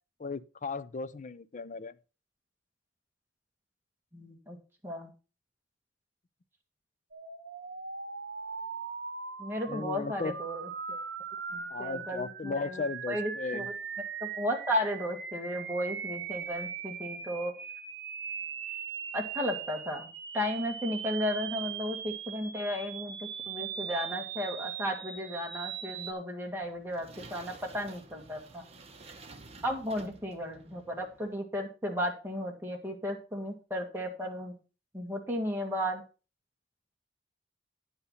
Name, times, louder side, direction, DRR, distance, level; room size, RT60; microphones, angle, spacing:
voice 1, 0.2-2.0 9.7-10.3 11.7-13.7, left 4 dB, 40° left, 0.5 m, -36 dB
voice 2, 4.1-4.6 4.8-5.1 9.4-10.6 10.9-11.0 11.5-13.7 14.2-17.6 19.1-28.6 29.6-34.6 34.9-36.0, equal, 10° right, 1.9 m, -34 dB
sound 1, 7.1-26.1, right 6 dB, 65° right, 1.2 m, -40 dB
sound 2, 26.4-31.4, right 3 dB, 35° right, 1.3 m, -52 dB
9.8 x 5.7 x 5.6 m
head